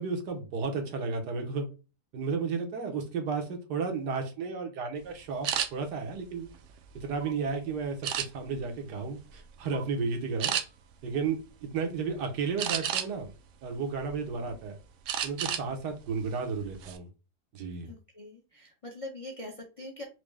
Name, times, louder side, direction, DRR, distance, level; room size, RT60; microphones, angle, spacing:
voice 1, 0.0-1.7 2.1-6.5 6.9-10.5 11.0-13.3 13.6-14.8 15.2-17.1 17.5-17.9, right 5 dB, 90° right, 4 dB, 1.5 m, -33 dB
sound 1, 5.4-5.7 6.3-7.3 8.0-8.6 9.1-9.4 9.7-9.9 10.4-10.6 12.6-13.3 13.8-14.5 15.1-15.7 16.0-16.2 16.6-17.0, right 9 dB, 70° right, 0.7 m, -31 dB
voice 2, 17.8-20.0, left 1 dB, 45° left, 1 dB, 0.4 m, -43 dB
4.8 x 2.1 x 3.2 m, 0.30 s
omnidirectional pair, 1.7 m